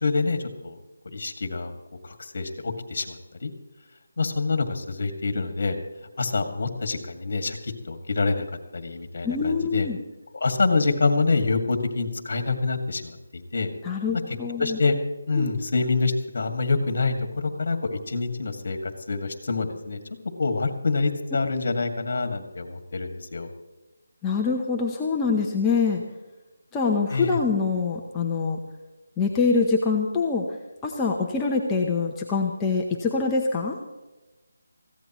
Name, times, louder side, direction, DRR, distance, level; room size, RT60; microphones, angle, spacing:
voice 1, 0.0-0.8 1.1-1.7 2.0-3.5 4.2-5.7 6.2-8.4 8.7-9.9 10.3-13.7 14.3-15.0 15.3-20.0 20.4-23.5 27.1-27.4, left 3 dB, 50° left, 7 dB, 2.1 m, -26 dB
voice 2, 9.2-10.0 13.8-14.8 15.4-15.5 24.2-26.0 26.7-28.6 29.2-30.4 30.8-33.8, left 4 dB, 10° left, -2 dB, 0.8 m, -24 dB
21.0 x 16.0 x 3.1 m, 1.1 s
figure-of-eight pair, 170°, 0 cm